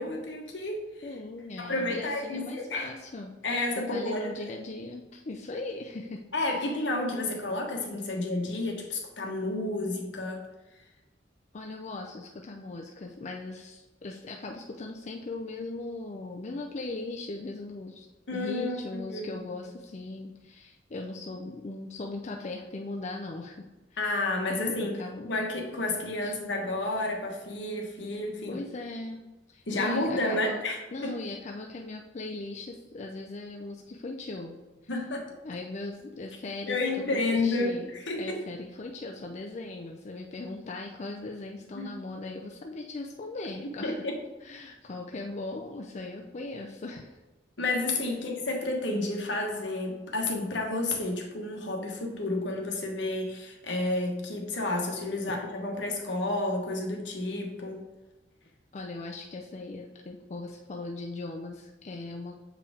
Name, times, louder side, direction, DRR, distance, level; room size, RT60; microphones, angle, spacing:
voice 1, 0.0-1.1 1.6-2.9 3.4-4.3 6.3-10.4 18.3-18.8 19.0-19.4 24.0-25.0 25.3-28.6 29.7-31.1 34.9-35.3 36.7-38.4 41.7-41.9 43.8-44.2 47.6-57.8, left 2 dB, 70° left, 1 dB, 1.2 m, -31 dB
voice 2, 1.0-3.3 3.8-6.2 6.5-6.8 11.5-18.1 18.3-24.2 24.5-25.4 26.2-26.3 28.5-29.2 29.5-30.6 30.9-34.6 35.4-37.9 38.2-44.0 44.4-47.2 55.3-55.4 58.7-62.4, left 2 dB, 40° left, 1 dB, 0.5 m, -39 dB
7.0 x 4.8 x 3.5 m, 1.1 s
head